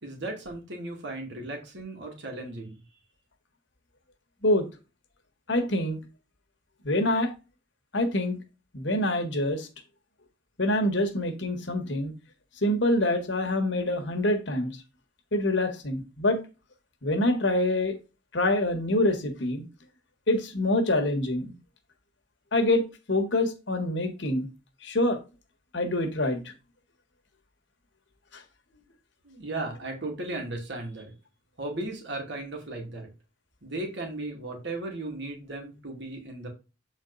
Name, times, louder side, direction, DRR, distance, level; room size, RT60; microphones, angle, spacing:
voice 1, 0.0-2.8 29.2-31.1 31.6-33.1 33.6-36.5, right 2 dB, 60° right, 2.4 m, -36 dB
voice 2, 5.5-6.0 6.8-7.3 7.9-8.4 8.7-9.7 10.6-12.1 12.6-14.7 15.3-16.4 17.0-17.9 18.3-19.6 20.3-21.5 22.5-24.5 24.8-25.2 25.7-26.4 28.3-28.4, left 1 dB, 65° left, 1.5 m, -25 dB
8.0 x 4.4 x 4.0 m
head